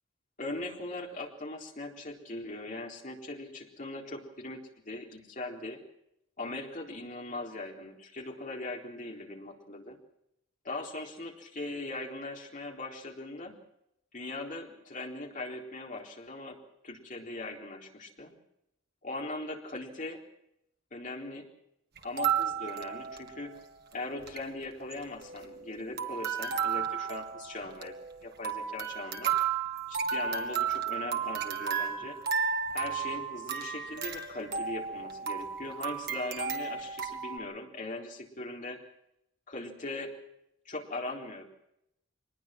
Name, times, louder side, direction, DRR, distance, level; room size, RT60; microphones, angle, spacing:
voice 1, 0.4-5.8 6.4-10.0 10.6-13.6 14.1-16.6 16.8-18.4 19.0-20.2 20.9-21.5 22.0-23.6 23.9-28.0 28.2-29.3 29.9-32.2 32.7-38.8 39.5-40.1 40.7-41.4, left 2 dB, 40° left, 1 dB, 4.0 m, -40 dB
sound 1, 22.0-23.6 23.9-24.0 24.2-24.4 24.9-25.7 26.0-37.4, right 7 dB, 50° right, 2.2 m, -33 dB
24.5 x 20.5 x 6.1 m, 0.79 s
head